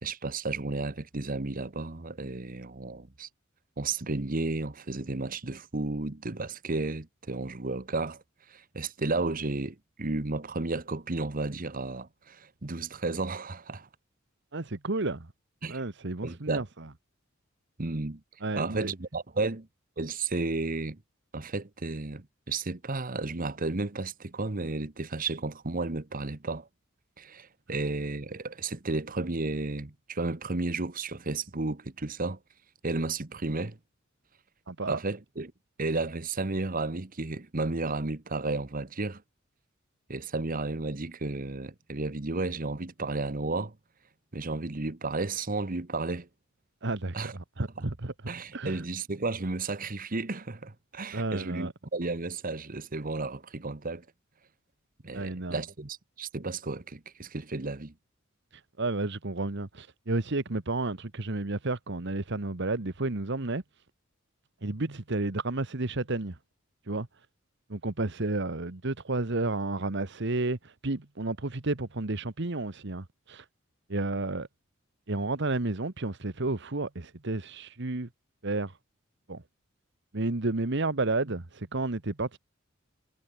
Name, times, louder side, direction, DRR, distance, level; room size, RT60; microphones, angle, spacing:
voice 1, 0.0-3.3 3.8-8.2 8.5-13.9 15.6-15.8 16.2-16.6 17.8-18.2 18.6-19.7 20.0-21.0 21.3-26.7 27.2-32.4 32.8-33.8 34.9-35.5 35.8-39.2 40.1-43.7 44.3-46.3 47.1-47.3 47.8-47.9 48.3-54.0 55.0-57.9, right 3 dB, 45° right, 1.3 m, -33 dB
voice 2, 14.5-15.3 15.7-16.6 18.4-18.9 34.7-35.0 46.8-48.1 48.5-48.8 51.1-51.7 55.1-55.6 58.5-63.6 64.6-66.4 66.9-67.1 67.7-73.4 73.9-74.5 75.1-78.1 78.4-78.7 79.3-79.4 80.1-82.4, right 2 dB, 60° right, 1.4 m, -31 dB
head